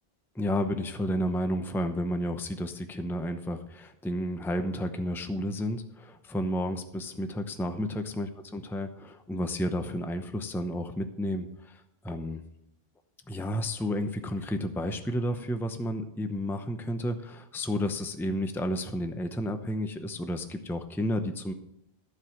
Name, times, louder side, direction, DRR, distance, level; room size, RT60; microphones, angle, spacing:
voice 1, 0.3-12.4 13.3-21.5, equal, 5° left, 7 dB, 0.6 m, -31 dB
14.5 x 4.9 x 7.7 m, 0.80 s
omnidirectional pair, 1.0 m